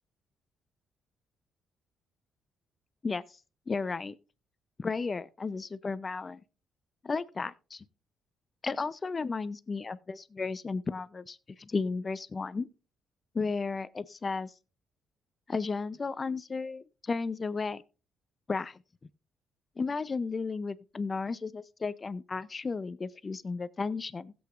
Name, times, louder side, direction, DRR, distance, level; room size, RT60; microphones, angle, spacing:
voice 1, 3.7-4.1 4.8-6.4 7.0-7.8 8.6-12.7 13.3-14.5 15.5-17.8 18.5-18.8 19.8-24.3, left 4 dB, 30° left, 0.6 m, -34 dB
16.0 x 7.9 x 2.5 m
cardioid pair, 90°, 0 cm